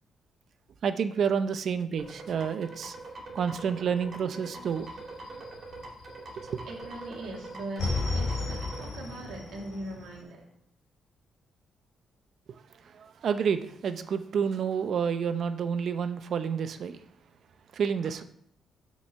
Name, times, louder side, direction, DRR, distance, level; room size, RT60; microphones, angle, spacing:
voice 1, 0.8-3.0 3.3-4.9 6.5-6.6 12.9-17.0 17.7-18.2, right 7 dB, 55° right, 11 dB, 0.6 m, -29 dB
sound 1, 2.0-8.8, right 2 dB, 40° right, 2.2 m, -43 dB
sound 2, 4.7-6.4 6.7-10.2, left 3 dB, 60° left, 2.5 m, -34 dB
voice 2, 6.3-10.5, right 1 dB, 80° right, 0 dB, 2.1 m, -41 dB
7.0 x 5.4 x 6.3 m, 0.71 s
cardioid pair, 125°, 0 cm